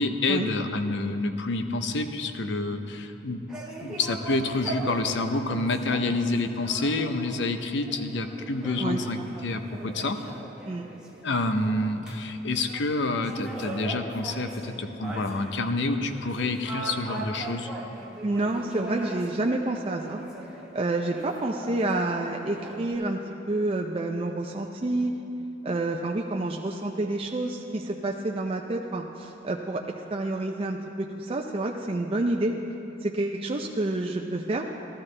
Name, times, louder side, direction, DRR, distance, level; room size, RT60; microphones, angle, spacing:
voice 1, 0.0-3.5 3.8-10.2 11.2-17.7, left 2 dB, 65° left, 8 dB, 0.7 m, -28 dB
sound 1, 3.5-12.3 12.5-20.7 21.1-22.9, right 2 dB, 5° right, 1.2 m, -40 dB
voice 2, 18.2-20.2 20.7-23.2 23.5-25.1 25.6-29.8 30.1-32.5 33.0-34.6, right 2 dB, 30° right, 1 dB, 0.5 m, -28 dB
14.5 x 12.5 x 3.3 m, 2.9 s
head